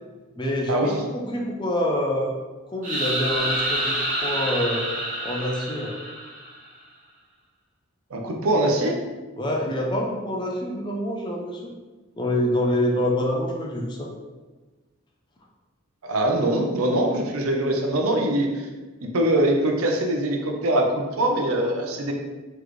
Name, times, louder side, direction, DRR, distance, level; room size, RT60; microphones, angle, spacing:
voice 1, 0.4-2.3 2.7-4.0 4.2-4.8 5.2-5.9 9.4-11.7 12.2-14.1, left 1 dB, 20° left, 0 dB, 0.5 m, -26 dB
sound 1, 2.8-6.6, right 1 dB, 40° right, 0.8 m, -27 dB
voice 2, 8.1-9.0 16.0-18.5 19.0-22.1, right 1 dB, 90° right, 2 dB, 0.6 m, -23 dB
4.0 x 3.1 x 3.1 m, 1.3 s
head